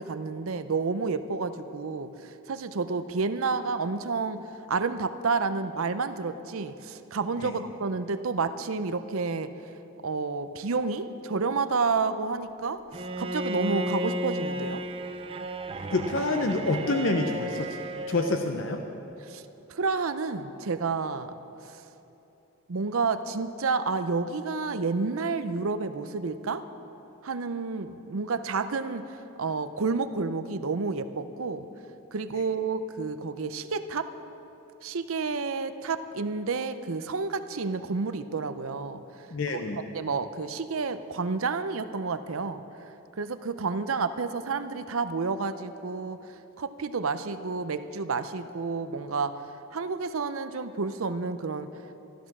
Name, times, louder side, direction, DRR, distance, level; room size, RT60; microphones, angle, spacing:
voice 1, 0.0-9.5 10.0-14.8 19.2-19.4 19.7-21.3 21.6-21.8 22.7-26.6 27.2-31.7 32.1-34.1 34.8-39.0 39.5-39.6 39.9-42.6 43.2-49.4 49.7-51.7, right 4 dB, 70° right, 11 dB, 0.6 m, -30 dB
Bowed string instrument, 12.9-18.5, right 1 dB, 25° right, 0.4 m, -33 dB
voice 2, 15.9-17.8 18.1-18.8 39.3-39.8, left 2 dB, 60° left, 4 dB, 0.7 m, -27 dB
13.5 x 13.0 x 6.1 m, 3.0 s
head